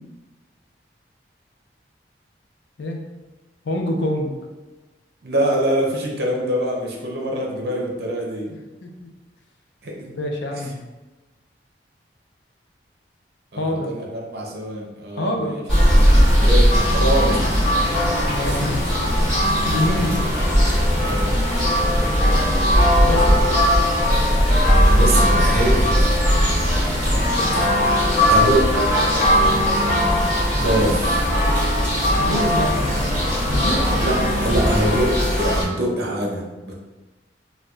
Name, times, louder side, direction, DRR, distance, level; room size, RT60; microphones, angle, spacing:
voice 1, 3.6-4.4 8.5-9.1 10.2-10.8 13.6-13.9 15.2-15.6 18.3-18.9 19.6-20.3 23.0-23.4 32.2-33.9, left 1 dB, 80° left, 2 dB, 0.5 m, -26 dB
voice 2, 5.2-8.5 9.8-10.2 10.5-10.6 13.5-15.6 16.4-17.6 18.4-18.7 21.0-21.4 24.8-26.1 28.2-28.7 29.1-29.2 30.6-31.2 33.9-36.7, right 1 dB, 60° right, -1 dB, 0.7 m, -24 dB
sound 1, 15.7-35.6, equal, 5° left, 1.3 m, -18 dB
4.3 x 2.3 x 2.3 m, 1.2 s
head